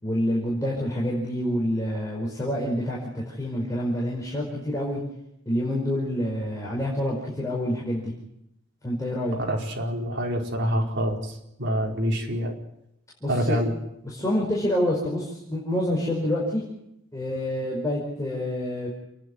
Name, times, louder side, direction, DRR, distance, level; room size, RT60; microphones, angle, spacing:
voice 1, 0.0-5.0 5.4-8.1 8.8-9.4 13.2-13.6 14.0-16.6 17.1-18.9, left 1 dB, 15° left, -5 dB, 5.2 m, -27 dB
voice 2, 9.4-11.3 11.6-12.5 13.3-13.7, equal, 55° right, -1 dB, 4.8 m, -26 dB
29.0 x 11.5 x 9.8 m, 0.83 s
head